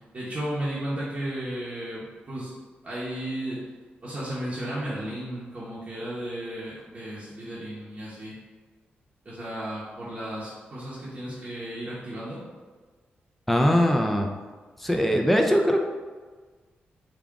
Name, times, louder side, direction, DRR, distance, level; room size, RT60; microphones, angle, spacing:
voice 1, 0.1-2.5 2.8-3.6 4.0-8.3 9.2-12.4, right 1 dB, 35° right, -8 dB, 0.8 m, -34 dB
voice 2, 13.5-14.3 14.8-15.8, equal, 5° left, 2 dB, 0.4 m, -21 dB
3.6 x 2.3 x 3.5 m, 1.4 s
wide cardioid pair, 125°, 4 cm